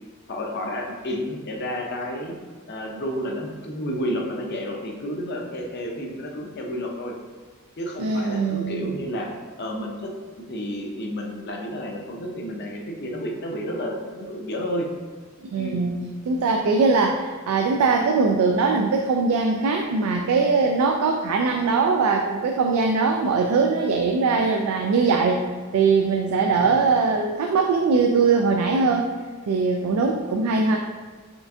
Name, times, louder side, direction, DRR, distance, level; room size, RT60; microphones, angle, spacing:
voice 1, 0.3-2.4 2.7-7.1 7.8-14.9 15.6-15.8 26.5-26.8, equal, 50° left, 0 dB, 0.6 m, -31 dB
voice 2, 8.0-9.0 15.5-25.4 25.7-29.1 29.5-30.9, right 4 dB, 85° right, 2 dB, 0.3 m, -21 dB
4.4 x 3.3 x 2.7 m, 1.4 s
head